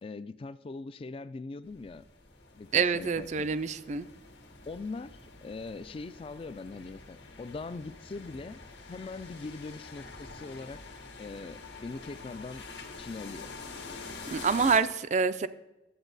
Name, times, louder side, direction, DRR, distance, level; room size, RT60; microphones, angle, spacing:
voice 1, 0.0-2.0 2.5-3.5 4.7-8.6 8.9-10.8 11.2-12.6 13.0-13.5, left 3 dB, 30° left, 0.3 m, -41 dB
sound 1, 1.6-14.8, left 3 dB, 80° left, 1.4 m, -46 dB
voice 2, 2.7-4.1 14.3-15.5, right 5 dB, 40° right, 0.4 m, -26 dB
11.0 x 7.9 x 4.0 m
head